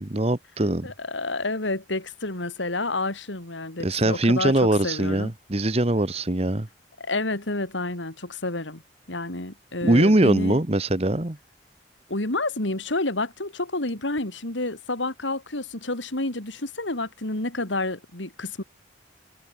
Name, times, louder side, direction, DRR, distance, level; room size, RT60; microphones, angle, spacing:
voice 1, 0.0-0.9 3.8-6.7 9.8-11.4, right 1 dB, 35° right, 1.2 m, -22 dB
voice 2, 0.8-5.3 7.0-8.8 9.1-10.6 12.1-18.6, left 2 dB, 85° left, 3.6 m, -29 dB
head